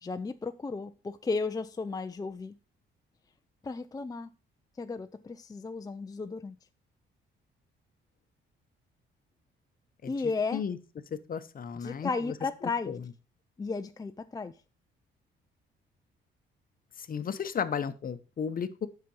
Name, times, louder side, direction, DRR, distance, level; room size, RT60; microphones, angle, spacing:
voice 1, 0.0-2.5 3.6-4.3 4.8-6.5 10.0-10.6 11.8-12.9 13.6-14.5, left 4 dB, 20° left, 0.5 m, -34 dB
voice 2, 11.3-12.3 12.6-13.1 17.0-18.9, left 7 dB, 45° left, 0.9 m, -34 dB
7.6 x 5.9 x 5.4 m
cardioid pair, 90°, 20 cm